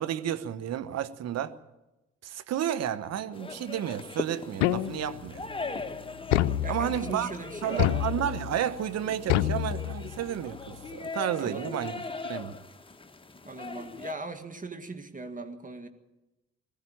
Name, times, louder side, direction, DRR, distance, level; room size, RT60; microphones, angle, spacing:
voice 1, 0.0-1.6 2.2-5.5 6.7-7.3 7.6-12.6, right 10 dB, 45° right, 1.2 m, -32 dB
sound 1, 3.3-14.1, left 3 dB, 15° left, 1.5 m, -40 dB
sound 2, 4.6-5.3 6.3-7.2 7.8-8.6 9.3-10.3, left 13 dB, 65° left, 0.7 m, -27 dB
voice 2, 6.6-7.9 11.4-11.8 13.5-15.9, right 3 dB, 25° right, 1.9 m, -39 dB
21.0 x 14.0 x 8.9 m
figure-of-eight pair, 45°, 35 cm